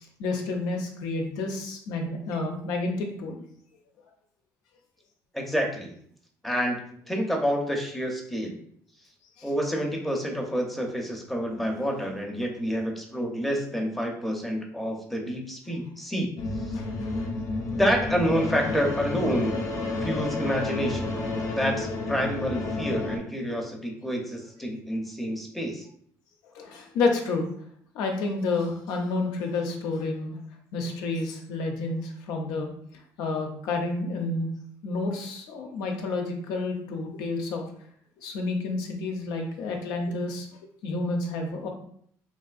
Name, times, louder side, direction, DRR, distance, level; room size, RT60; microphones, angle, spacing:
voice 1, 0.2-3.4 9.4-9.5 16.7-16.9 26.5-27.5 27.9-30.3 30.7-32.7 33.2-34.5 34.8-37.7 38.2-40.5 40.8-41.7, left 3 dB, 85° left, 2 dB, 0.6 m, -29 dB
voice 2, 5.3-5.9 6.4-8.6 9.4-16.3 16.7-16.8 17.8-19.6 20.0-21.2 21.5-25.9, equal, ahead, 1 dB, 0.6 m, -28 dB
sound 1, 16.4-23.2, left 2 dB, 50° left, 0.7 m, -30 dB
3.3 x 2.5 x 2.4 m, 0.64 s
cardioid pair, 110°, 6 cm